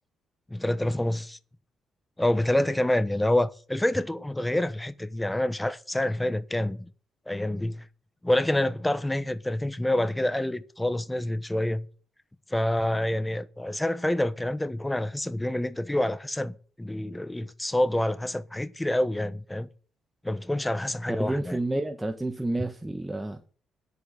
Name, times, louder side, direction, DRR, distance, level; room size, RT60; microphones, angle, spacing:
voice 1, 0.5-1.4 2.2-6.8 7.3-7.8 8.2-11.9 12.5-19.7 20.2-21.6, left 1 dB, 10° left, 1.0 m, -27 dB
voice 2, 21.2-23.4, right 2 dB, 10° right, 1.3 m, -30 dB
10.0 x 8.5 x 6.6 m
cardioid pair, 90°, 0 cm